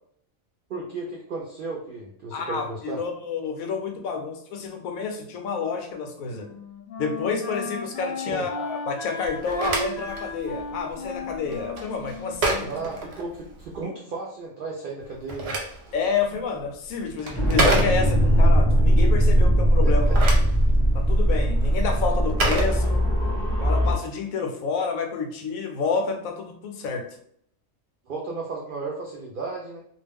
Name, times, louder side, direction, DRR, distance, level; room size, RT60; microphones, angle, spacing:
voice 1, 0.7-3.0 8.3-8.5 12.7-15.6 19.8-20.2 28.1-29.8, right 3 dB, 75° right, -2 dB, 0.4 m, -34 dB
voice 2, 2.3-6.5 7.0-12.7 15.9-20.2 20.9-23.1 23.6-27.1, left 5 dB, 80° left, 4 dB, 1.0 m, -29 dB
Wind instrument woodwind instrument, 5.8-13.6, left 2 dB, 50° left, 0.7 m, -36 dB
Telephone, 9.2-13.8 15.0-18.4 19.8-23.4, right 2 dB, 60° right, 0.8 m, -30 dB
sound 1, 17.3-23.9, equal, 5° left, 0.5 m, -20 dB
2.4 x 2.1 x 3.4 m, 0.67 s
omnidirectional pair, 1.4 m